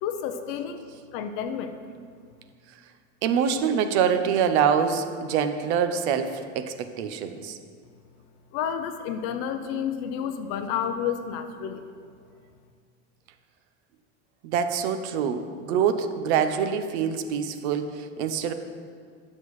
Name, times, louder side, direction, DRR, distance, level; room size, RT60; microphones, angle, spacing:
voice 1, 0.0-0.8 1.1-1.8 8.5-11.8, left 8 dB, 40° left, 8 dB, 0.5 m, -30 dB
voice 2, 3.2-7.6 14.4-18.5, right 7 dB, 65° right, 9 dB, 0.7 m, -25 dB
11.0 x 7.4 x 3.1 m, 2.1 s
cardioid pair, 170°, 36 cm